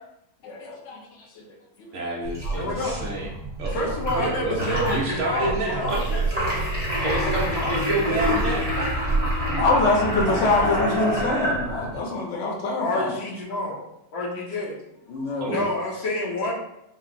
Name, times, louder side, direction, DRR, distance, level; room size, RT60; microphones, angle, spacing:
voice 1, 0.4-1.9 2.4-2.6 5.7-5.8 9.0-9.1 9.4-13.2 15.1-15.6, left 2 dB, 65° left, 0 dB, 0.7 m, -25 dB
voice 2, 1.9-3.3 3.6-3.9 4.1-6.3 7.0-8.8 15.4-15.7, right 2 dB, 70° right, -2 dB, 0.7 m, -30 dB
sound 1, 2.2-12.0, right 1 dB, 5° right, 1.0 m, -27 dB
voice 3, 2.5-3.1 3.7-6.7 7.5-8.4 10.4-11.2 12.8-13.8 14.1-14.7 15.5-16.5, left 1 dB, 80° left, -3 dB, 1.7 m, -29 dB
4.3 x 2.1 x 4.0 m, 0.82 s
omnidirectional pair, 2.1 m